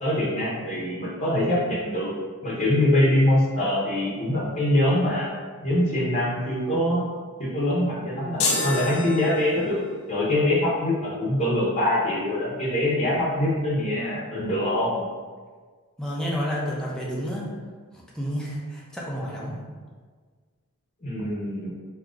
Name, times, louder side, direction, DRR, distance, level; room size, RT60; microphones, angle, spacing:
voice 1, 0.0-2.1 2.4-5.3 5.6-7.0 7.4-9.8 10.1-15.0 21.0-21.7, left 1 dB, 30° left, -7 dB, 0.9 m, -24 dB
sound 1, 8.4-9.9, left 3 dB, 75° left, 0.7 m, -28 dB
voice 2, 16.0-17.5 18.1-19.6, equal, 5° left, -5 dB, 0.7 m, -30 dB
3.7 x 2.9 x 3.7 m, 1.5 s
head